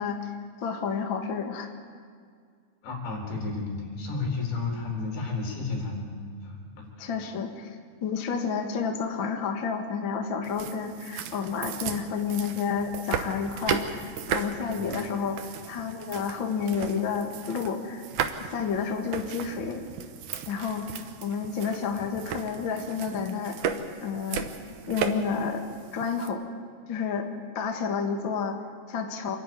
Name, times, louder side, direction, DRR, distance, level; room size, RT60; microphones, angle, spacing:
voice 1, 0.0-1.7 7.0-18.0 18.5-19.8 20.5-20.9 21.2-23.6 24.0-24.5 24.9-25.6 25.9-26.4 26.9-27.3 27.5-29.4, left 6 dB, 45° left, 3 dB, 1.6 m, -30 dB
voice 2, 2.8-6.1 6.4-7.1 11.8-11.9 14.7-15.0, left 3 dB, 80° left, 0 dB, 6.3 m, -32 dB
sound 1, 10.4-26.3, right 8 dB, 70° right, 2.0 m, -36 dB
28.0 x 12.0 x 9.4 m, 2.1 s
omnidirectional pair, 4.8 m